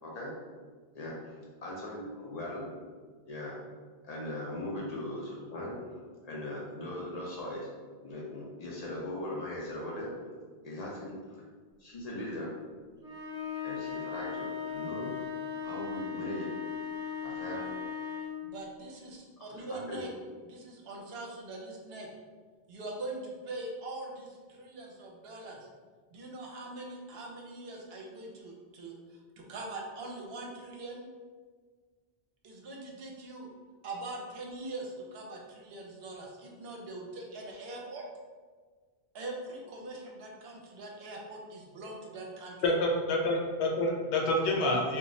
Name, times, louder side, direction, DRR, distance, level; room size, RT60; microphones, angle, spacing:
voice 1, 0.0-0.3 0.9-1.3 1.6-2.7 3.3-3.6 4.0-6.0 6.2-7.7 8.0-10.1 10.6-11.4 11.8-12.5 13.6-15.1 15.6-16.5 17.2-17.6 19.5-20.0, left 1 dB, 55° left, -4 dB, 0.5 m, -39 dB
sound 1, 13.0-18.5, left 7 dB, 5° right, 0.6 m, -37 dB
voice 2, 18.4-20.1 20.4-22.1 22.7-25.7 26.1-31.0 32.4-33.5 33.8-38.0 39.1-42.6, right 2 dB, 75° right, -1 dB, 0.8 m, -42 dB
voice 3, 42.6-45.0, left 1 dB, 90° left, 0 dB, 0.9 m, -28 dB
2.3 x 2.0 x 3.7 m, 1.5 s
omnidirectional pair, 1.1 m